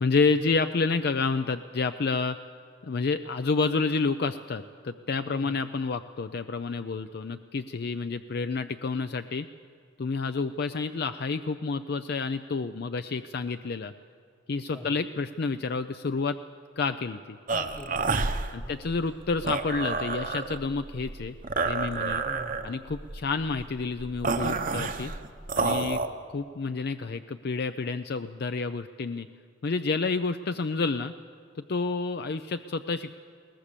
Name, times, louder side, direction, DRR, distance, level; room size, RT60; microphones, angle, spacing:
voice 1, 0.0-2.4 2.8-9.5 10.0-13.9 14.5-16.4 16.8-17.4 18.5-21.4 21.6-22.2 22.6-25.1 25.5-26.0 26.3-29.3 29.6-31.1 31.7-33.2, left 4 dB, 55° left, 10 dB, 0.5 m, -29 dB
voice 2, 5.3-5.7 14.7-14.9 17.5-18.1 18.6-18.8 22.2-22.7 25.8-26.1, equal, 10° left, 5 dB, 1.3 m, -43 dB
sound 1, 17.5-26.1, right 4 dB, 45° right, 0.9 m, -30 dB
22.0 x 18.5 x 6.8 m, 2.4 s
head